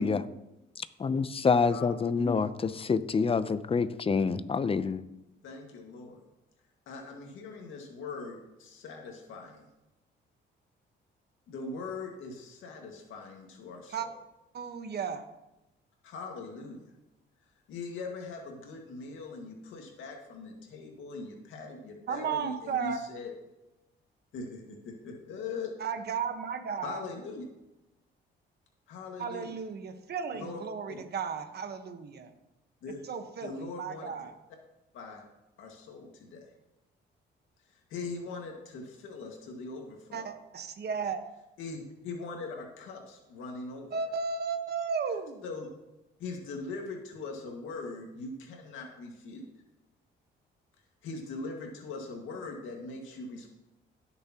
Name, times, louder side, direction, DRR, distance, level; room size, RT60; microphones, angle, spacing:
voice 1, 1.0-5.0, left 5 dB, 30° left, 14 dB, 0.6 m, -27 dB
voice 2, 1.6-2.3 5.4-6.2 6.9-9.6 11.5-14.1 16.0-16.8 17.7-23.3 24.3-24.6 25.0-25.7 26.8-27.5 28.9-29.5 30.3-30.6 30.9-31.0 32.8-33.0 33.4-34.1 34.9-35.2 35.6-36.4 37.9-40.3 41.6-44.0 45.4-45.7 46.2-49.4 51.0-53.5, left 3 dB, 85° left, 1 dB, 1.9 m, -41 dB
voice 3, 14.5-15.2 22.1-23.0 25.8-27.0 29.2-32.3 33.0-34.3 40.1-41.2 43.9-45.4, right 6 dB, 55° right, 7 dB, 1.3 m, -34 dB
16.5 x 6.8 x 3.0 m, 0.96 s
cardioid pair, 90°, 20 cm